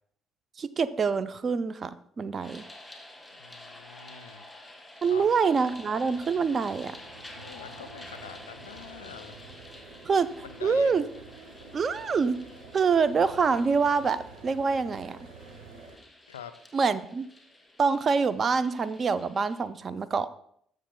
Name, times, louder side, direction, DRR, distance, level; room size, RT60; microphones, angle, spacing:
voice 1, 0.6-2.6 5.0-7.0 10.1-10.3 10.6-11.0 11.7-12.4 12.7-15.2 16.7-17.3 17.8-20.3, right 5 dB, 35° right, 15 dB, 0.4 m, -25 dB
sound 1, 2.4-19.6, left 1 dB, 10° left, 2.2 m, -50 dB
voice 2, 3.4-4.4 5.0-5.4 7.4-9.4 10.4-10.9 16.3-16.5, left 8 dB, 75° left, 12 dB, 0.4 m, -45 dB
sound 2, 5.4-16.0, right 4 dB, 60° right, 1.2 m, -49 dB
14.5 x 6.3 x 2.2 m, 0.68 s
figure-of-eight pair, 50°, 0 cm